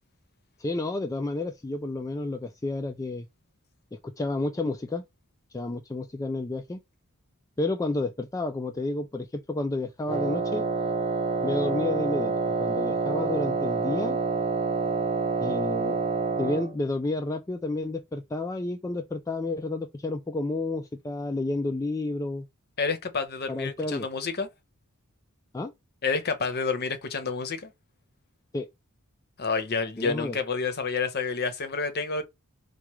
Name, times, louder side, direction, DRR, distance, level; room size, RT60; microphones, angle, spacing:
voice 1, 0.6-3.3 3.9-5.0 5.5-6.8 7.6-10.7 11.4-14.2 15.4-16.0 16.4-22.5 23.5-24.1 25.5-25.7 28.5-28.7 30.0-30.4, left 2 dB, 15° left, 0.3 m, -30 dB
Wind instrument woodwind instrument, 10.1-16.7, right 4 dB, 30° right, 0.7 m, -27 dB
voice 2, 22.8-24.5 26.0-27.7 29.4-32.2, left 4 dB, 50° left, 0.8 m, -29 dB
4.6 x 2.3 x 3.0 m
head